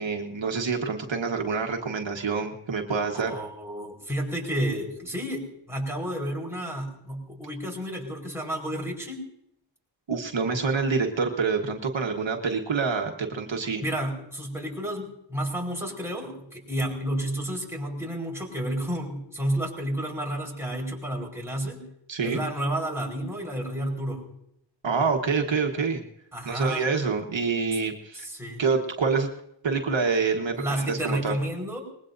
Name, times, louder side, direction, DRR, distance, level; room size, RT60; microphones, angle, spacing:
voice 1, 0.0-3.3 10.1-13.8 22.1-22.4 24.8-26.0 26.4-28.3 28.6-29.3 29.6-31.4, right 5 dB, 75° right, 3 dB, 1.4 m, -27 dB
voice 2, 3.1-9.3 13.8-21.8 22.2-24.2 26.3-26.9 28.1-28.6 30.6-31.8, right 1 dB, 5° right, -2 dB, 4.7 m, -31 dB
24.5 x 20.5 x 2.7 m, 0.76 s
wide cardioid pair, 100°, 45 cm